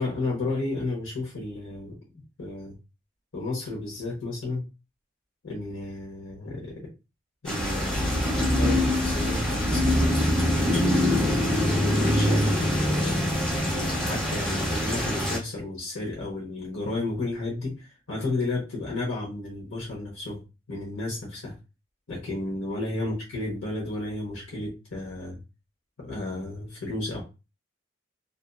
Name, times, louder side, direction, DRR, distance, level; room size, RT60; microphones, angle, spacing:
voice 1, 0.0-2.0 2.4-2.7 3.3-4.7 5.4-6.9 7.4-9.9 10.4-11.4 11.8-20.4 20.7-21.5 22.1-25.4 26.0-27.2, left 2 dB, 90° left, -3 dB, 1.0 m, -33 dB
sound 1, 7.4-15.4, left 1 dB, 5° left, 0.8 m, -24 dB
2.6 x 2.4 x 2.3 m, 0.28 s
head